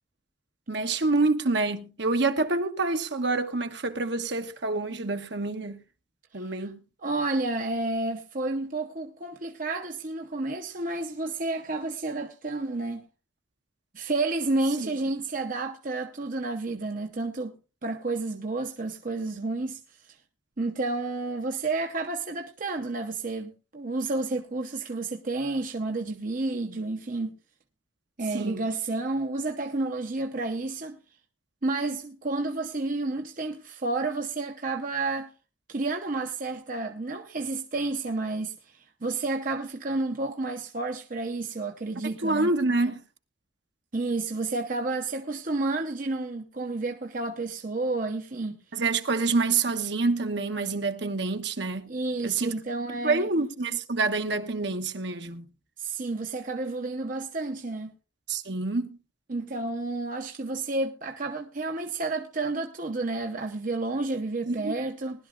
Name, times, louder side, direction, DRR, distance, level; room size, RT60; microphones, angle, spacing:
voice 1, 0.7-5.8 6.3-6.8 14.8-14.9 28.3-28.6 42.2-43.0 48.7-51.9 52.2-52.5 53.0-55.5 58.3-58.9 64.5-64.7, right 3 dB, 60° right, 1.2 m, -27 dB
voice 2, 6.3-6.7 7.0-13.0 13.9-17.5 17.8-19.8 20.1-20.2 20.6-27.3 28.2-31.0 31.6-35.3 35.7-42.5 43.9-48.6 51.9-53.3 55.8-57.9 59.3-65.3, right 2 dB, 45° right, 0.9 m, -30 dB
20.0 x 11.5 x 2.5 m
head